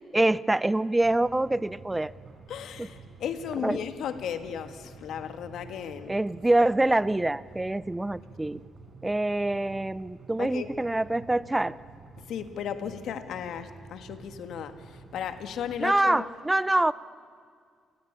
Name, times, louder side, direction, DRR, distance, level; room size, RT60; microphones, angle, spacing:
voice 1, 0.1-2.1 2.8-2.9 3.6-3.8 6.1-8.6 9.0-11.8 15.8-16.9, right 2 dB, 10° right, 18 dB, 0.6 m, -25 dB
sound 1, 1.0-15.8, right 3 dB, 55° right, 5.2 m, -49 dB
voice 2, 2.5-6.2 10.4-10.7 12.3-16.3, left 8 dB, 75° left, 8 dB, 1.6 m, -35 dB
28.5 x 19.5 x 8.7 m, 2.1 s
cardioid pair, 90°, 0 cm